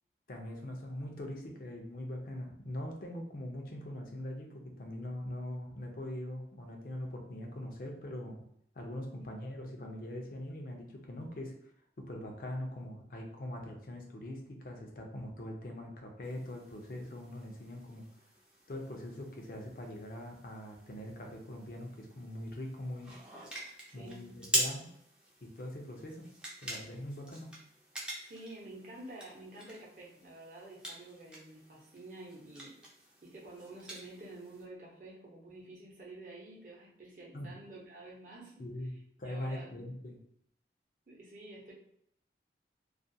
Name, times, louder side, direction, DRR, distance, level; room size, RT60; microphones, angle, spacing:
voice 1, 0.3-8.4 8.7-11.7 12.0-18.0 18.7-23.1 23.9-24.9 25.4-26.3 26.6-27.5 37.3-37.5 38.6-38.9 39.2-40.2, left 1 dB, 50° left, 1 dB, 0.5 m, -42 dB
sound 1, 16.2-34.6, right 1 dB, 5° right, 0.4 m, -43 dB
voice 2, 28.2-32.7 33.2-38.6 39.2-39.7 41.1-41.7, right 2 dB, 45° right, -4 dB, 0.7 m, -49 dB
2.4 x 2.2 x 2.6 m, 0.71 s
head